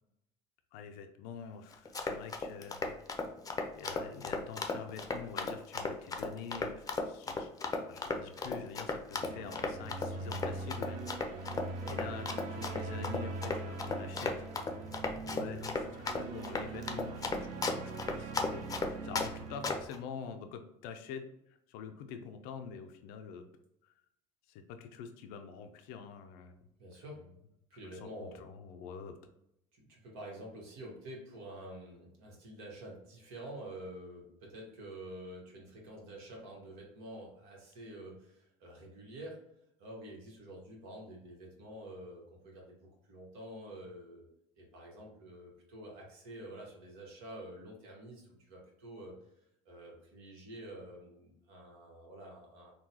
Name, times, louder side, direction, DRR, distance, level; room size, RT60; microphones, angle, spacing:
voice 1, 0.7-3.0 3.8-7.5 7.9-11.0 11.9-14.5 15.2-17.5 17.8-18.7 19.0-23.5 23.8-23.9 24.5-26.5 26.9-27.0 27.8-29.2, left 6 dB, 75° left, 7 dB, 0.4 m, -46 dB
Run, 1.7-19.3 19.6-20.0, left 3 dB, 20° left, 0.5 m, -35 dB
sound 1, 9.2-19.9, right 3 dB, 60° right, 0.6 m, -42 dB
voice 2, 26.8-27.2 27.7-28.4 29.7-39.4 39.8-44.3 44.6-49.1 49.6-52.7, right 1 dB, 80° right, -2 dB, 1.3 m, -48 dB
3.8 x 2.2 x 2.7 m, 0.78 s
supercardioid pair, 85°, 16 cm